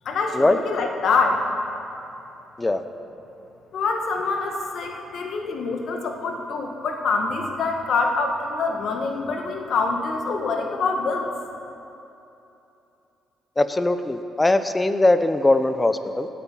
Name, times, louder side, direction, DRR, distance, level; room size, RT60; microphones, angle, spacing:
voice 1, 0.0-1.4 3.7-11.3, left 4 dB, 65° left, 2 dB, 1.7 m, -25 dB
voice 2, 13.6-16.3, left 2 dB, 15° left, 10 dB, 0.7 m, -20 dB
17.0 x 8.5 x 5.7 m, 2.9 s
cardioid pair, 90°, 0 cm